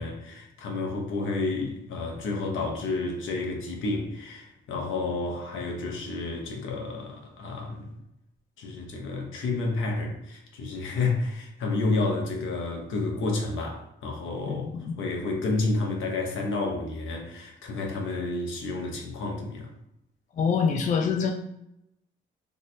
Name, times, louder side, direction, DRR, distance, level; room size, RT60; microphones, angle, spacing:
voice 1, 0.0-7.9 8.6-14.7 15.0-19.7, left 3 dB, 80° left, 0 dB, 1.0 m, -30 dB
voice 2, 14.5-15.0 20.4-21.3, left 6 dB, 40° left, 2 dB, 0.4 m, -25 dB
3.2 x 2.1 x 4.2 m, 0.84 s
cardioid pair, 90°, 20 cm